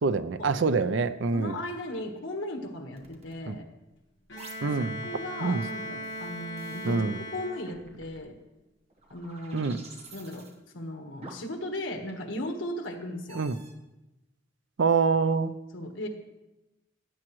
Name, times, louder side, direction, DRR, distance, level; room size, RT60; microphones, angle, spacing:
voice 1, 0.0-1.6 3.5-3.6 4.6-5.1 5.4-5.6 6.8-7.2 9.5-9.8 13.4-13.6 14.8-15.5, right 4 dB, 75° right, 12 dB, 0.5 m, -26 dB
voice 2, 1.3-3.6 4.6-4.8 5.0-7.0 7.3-8.3 9.1-9.7 10.1-10.4 10.7-13.5 15.7-16.1, left 1 dB, 90° left, 5 dB, 1.4 m, -36 dB
sound 1, 1.9-2.0 2.9-3.3 4.4-4.8 5.6-7.0 7.6-8.3 8.9-10.6 11.2-11.6 12.1-12.4 13.3-13.7, right 3 dB, 35° right, 1.1 m, -50 dB
Bowed string instrument, 4.3-8.1, equal, 65° left, 1.4 m, -39 dB
16.0 x 8.8 x 3.1 m, 1.0 s
head